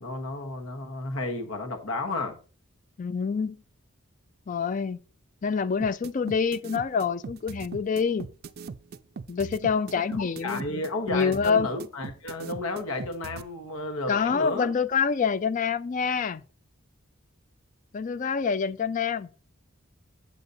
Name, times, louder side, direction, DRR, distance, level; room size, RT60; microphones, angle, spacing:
voice 1, 0.0-2.4 10.2-14.7, left 2 dB, 85° left, 1.2 m, -32 dB
voice 2, 3.0-3.6 4.5-5.0 5.4-8.3 9.3-10.8 11.1-11.7 14.1-16.4 17.9-19.3, left 6 dB, 35° left, 0.3 m, -26 dB
sound 1, 5.8-13.4, right 5 dB, 45° right, 0.4 m, -39 dB
8.1 x 8.0 x 2.7 m
head